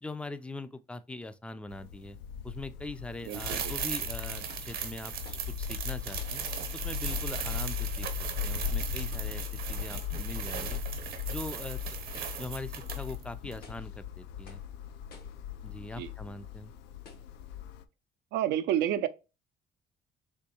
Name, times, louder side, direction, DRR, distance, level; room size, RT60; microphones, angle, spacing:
voice 1, 0.0-2.2 2.4-6.4 6.7-8.1 8.4-10.8 11.3-11.8 12.4-14.6 15.6-16.7, left 2 dB, 5° left, 0.3 m, -42 dB
sound 1, 1.7-17.8, left 8 dB, 90° left, 0.4 m, -38 dB
sound 2, 3.3-13.2 13.5-13.6, right 8 dB, 65° right, 0.8 m, -38 dB
voice 2, 3.3-3.7 16.0-16.1 18.3-19.1, right 11 dB, 85° right, 0.4 m, -29 dB
sound 3, 4.5-4.8 5.2-5.5 6.2-6.4 7.1-7.5 8.0-8.3 9.1-9.4 9.9-10.2 10.7-11.0 11.4-11.5 12.0-12.4 12.9-13.2 13.6-13.9 14.5-14.7 15.1-15.4 16.1-16.2 17.0-17.3, left 4 dB, 65° left, 0.9 m, -53 dB
3.5 x 3.0 x 2.8 m
cardioid pair, 110°, 17 cm